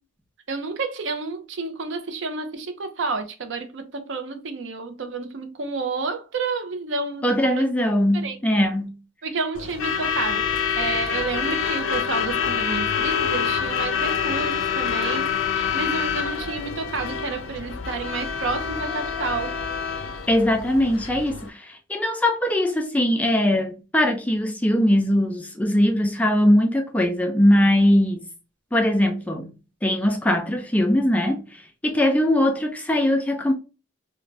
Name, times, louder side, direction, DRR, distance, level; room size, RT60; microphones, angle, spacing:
voice 1, 0.5-7.7 8.1-8.4 9.2-19.6, right 4 dB, 75° right, 0.5 m, -30 dB
voice 2, 7.2-8.9 20.3-28.3 28.7-29.5 29.8-33.5, left 1 dB, 5° left, 0.3 m, -21 dB
Truck / Alarm, 9.5-21.5, left 7 dB, 90° left, 0.4 m, -26 dB
2.5 x 2.1 x 3.2 m
head